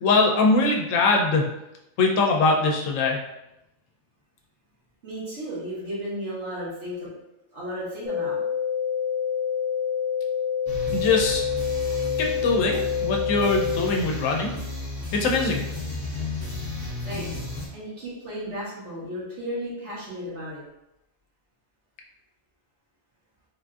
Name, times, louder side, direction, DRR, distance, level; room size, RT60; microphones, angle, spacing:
voice 1, 0.0-1.5 2.0-3.2 10.9-11.4 12.2-14.5 15.1-15.6, left 3 dB, 90° left, 0 dB, 1.0 m, -22 dB
voice 2, 5.0-7.1 7.5-8.4 17.0-17.4 17.7-20.6, equal, 65° right, -8 dB, 1.5 m, -34 dB
sound 1, 8.0-14.0, left 7 dB, 65° left, 1.0 m, -27 dB
sound 2, 10.7-17.7, left 2 dB, 15° left, 0.7 m, -33 dB
3.3 x 2.5 x 2.3 m, 0.88 s
omnidirectional pair, 1.3 m